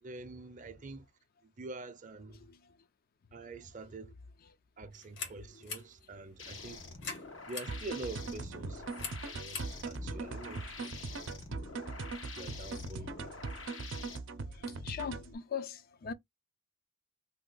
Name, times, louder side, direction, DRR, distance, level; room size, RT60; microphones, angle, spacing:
voice 1, 0.0-1.1 1.4-2.4 3.3-4.1 4.8-6.9 7.5-8.8 9.3-10.9 12.3-13.1, right 2 dB, 40° right, 0.5 m, -46 dB
sound 1, 4.9-11.2, left 5 dB, 70° left, 1.3 m, -47 dB
sound 2, 6.4-14.2, left 4 dB, 85° left, 1.0 m, -47 dB
sound 3, 7.7-15.3, right 3 dB, 85° right, 0.6 m, -41 dB
voice 2, 14.5-16.1, left 6 dB, 50° left, 0.4 m, -41 dB
2.8 x 2.2 x 3.8 m
head